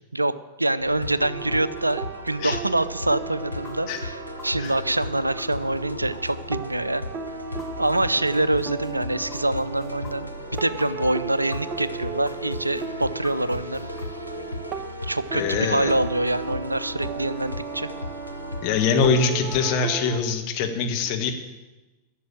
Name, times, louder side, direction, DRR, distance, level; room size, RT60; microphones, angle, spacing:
voice 1, 0.1-7.0 7.8-13.9 15.0-17.9, right 2 dB, 85° right, 16 dB, 0.5 m, -25 dB
sound 1, 0.8-19.7, left 2 dB, 90° left, 0.9 m, -36 dB
sound 2, 1.2-20.2, right 4 dB, 35° right, 1.0 m, -36 dB
sound 3, 3.6-7.9 8.3-11.9 12.2-14.1, left 4 dB, 20° left, 2.6 m, -47 dB
voice 2, 15.3-15.9 18.6-21.3, left 5 dB, 45° left, 4 dB, 1.7 m, -23 dB
12.5 x 7.4 x 9.0 m, 1.1 s
figure-of-eight pair, 90°, 0 cm